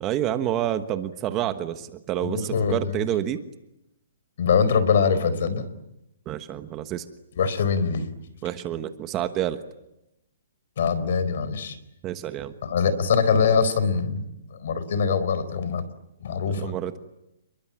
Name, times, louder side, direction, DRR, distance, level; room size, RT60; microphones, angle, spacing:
voice 1, 0.0-3.4 6.3-7.0 8.4-9.6 12.0-12.5 16.6-17.0, right 11 dB, 20° right, 9 dB, 1.3 m, -28 dB
voice 2, 2.2-3.0 4.4-5.6 7.4-8.1 10.8-11.8 12.6-14.3 14.5-15.8 16.2-16.7, left 6 dB, 55° left, 15 dB, 4.4 m, -23 dB
30.0 x 22.5 x 8.9 m, 0.87 s
hypercardioid pair, 170°, 0 cm